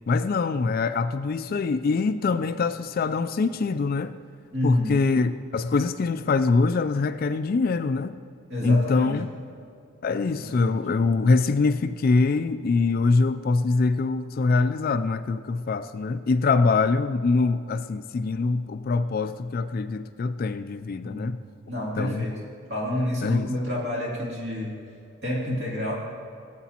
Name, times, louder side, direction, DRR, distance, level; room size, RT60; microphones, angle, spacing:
voice 1, 0.1-4.1 4.6-8.2 8.6-9.3 10.0-21.4 22.0-22.3 23.2-23.5, left 4 dB, 45° left, 0.3 m, -24 dB
voice 2, 4.5-5.0 8.5-9.2 10.2-10.8 21.0-21.3 21.7-22.4 22.7-24.8 25.2-25.9, left 1 dB, 50° right, 2.6 m, -29 dB
18.0 x 8.2 x 2.9 m
head